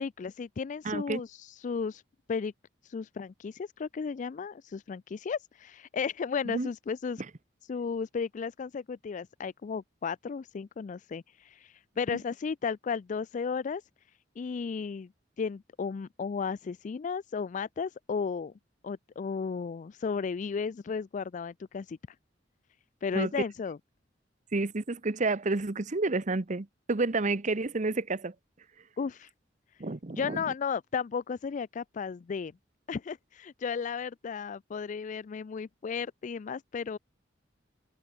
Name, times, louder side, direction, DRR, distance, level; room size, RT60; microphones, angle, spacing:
voice 1, 0.0-2.0 2.3-2.5 2.9-7.2 7.7-13.8 14.4-15.1 15.4-18.5 18.8-22.0 23.0-23.8 29.0-29.3 30.1-32.5 32.9-37.0, left 5 dB, 40° left, 0.3 m, -34 dB
voice 2, 0.8-1.2 6.5-6.7 23.1-23.3 24.5-28.3 29.8-30.4, right 3 dB, 40° right, 0.9 m, -30 dB
head